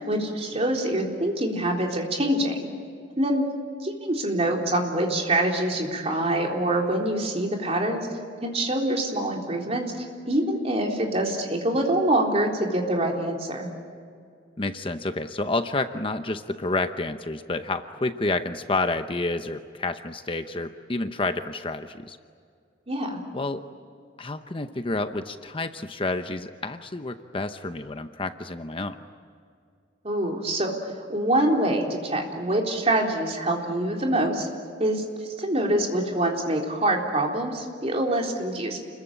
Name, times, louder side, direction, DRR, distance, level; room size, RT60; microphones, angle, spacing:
voice 1, 0.0-2.7 3.2-3.4 3.8-8.1 8.4-13.7 22.9-23.2 30.0-34.5 34.8-35.0 35.4-38.8, right 1 dB, 35° right, 1 dB, 3.8 m, -25 dB
voice 2, 14.6-22.2 23.3-23.6 24.2-29.0, left 2 dB, 30° left, 9 dB, 0.8 m, -29 dB
29.5 x 22.0 x 8.9 m, 2.3 s
head